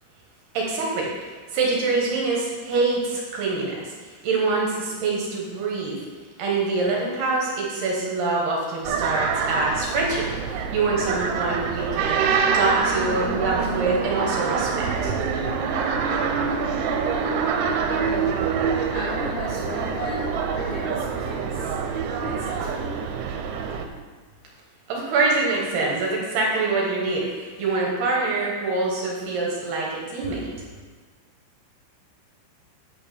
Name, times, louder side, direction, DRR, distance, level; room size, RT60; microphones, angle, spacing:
voice 1, 0.5-1.1 1.5-6.0 6.4-12.2 12.5-15.1 24.9-30.5, right 3 dB, 65° right, -3 dB, 2.9 m, -25 dB
sound 1, 8.9-23.9, right 6 dB, 85° right, 3.0 m, -25 dB
voice 2, 17.5-21.8 22.2-23.1, left 2 dB, 80° left, -4 dB, 1.9 m, -36 dB
9.2 x 4.4 x 6.8 m, 1.5 s
omnidirectional pair, 5.6 m